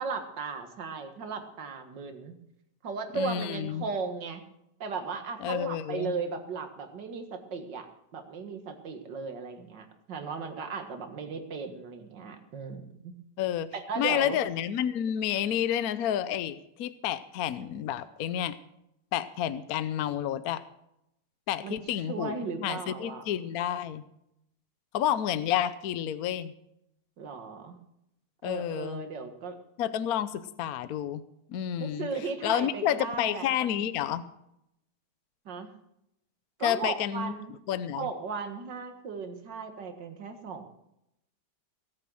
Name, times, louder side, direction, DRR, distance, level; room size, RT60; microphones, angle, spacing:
voice 1, 0.0-2.3 2.8-4.4 4.8-7.9 8.1-13.1 13.7-14.4 21.6-21.8 22.1-23.2 27.2-27.8 28.4-29.6 31.8-33.5 35.5-35.7 36.6-37.5 38.0-40.6, right 5 dB, 85° right, 7 dB, 2.3 m, -36 dB
voice 2, 3.1-3.9 5.4-6.1 13.4-13.7 14.0-18.6 19.1-20.6 21.5-22.3 22.6-24.0 24.9-26.5 28.4-29.0 29.8-31.2 31.5-32.1 32.4-34.3 36.6-37.3 37.7-38.1, left 10 dB, 65° left, 13 dB, 1.1 m, -30 dB
18.5 x 9.0 x 6.3 m, 0.81 s
omnidirectional pair, 1.9 m